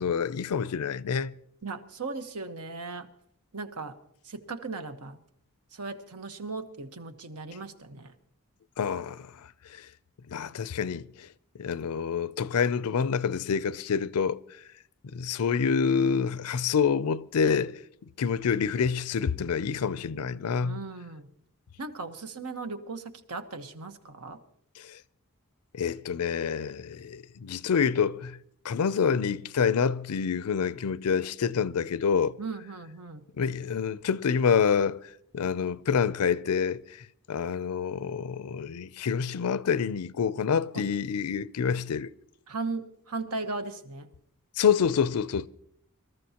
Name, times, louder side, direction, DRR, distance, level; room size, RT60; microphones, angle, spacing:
voice 1, 0.0-1.3 8.8-9.9 10.3-11.3 11.6-14.4 15.1-17.8 18.2-20.9 24.8-25.0 25.7-28.4 28.6-32.4 33.4-35.0 35.3-42.1 44.6-45.5, left 6 dB, 80° left, 0.5 m, -27 dB
voice 2, 1.6-3.1 3.5-3.9 4.2-5.2 5.7-8.1 20.6-21.3 21.8-24.4 32.4-33.2 40.7-40.8 42.5-44.1, right 3 dB, 90° right, 1.2 m, -37 dB
25.5 x 13.5 x 2.9 m
head